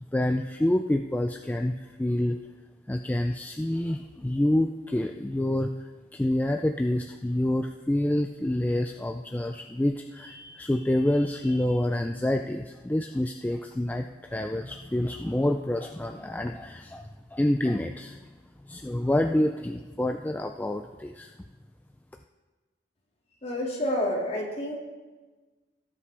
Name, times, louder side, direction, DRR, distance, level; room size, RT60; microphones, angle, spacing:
voice 1, 0.1-2.4 2.9-18.3 18.6-21.3, left 1 dB, 10° left, 5 dB, 0.3 m, -27 dB
voice 2, 23.4-24.7, left 1 dB, 35° left, -2 dB, 2.2 m, -29 dB
17.5 x 8.3 x 3.4 m, 1.3 s
head